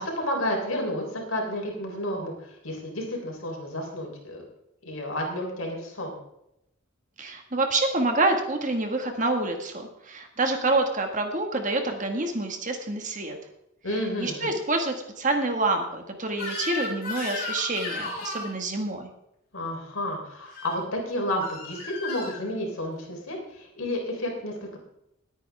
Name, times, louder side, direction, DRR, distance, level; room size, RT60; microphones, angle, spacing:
voice 1, 0.0-2.3 2.6-4.4 4.8-6.1 13.8-14.5 19.5-24.8, left 1 dB, 80° left, 1 dB, 3.7 m, -31 dB
voice 2, 7.2-13.4 13.9-19.1, right 2 dB, 35° right, 4 dB, 1.7 m, -27 dB
Crying sobbing / Screech, 16.3-18.5 20.4-20.8 21.4-22.4, left 3 dB, 45° left, 5.5 m, -34 dB
20.0 x 9.1 x 3.5 m, 0.82 s
head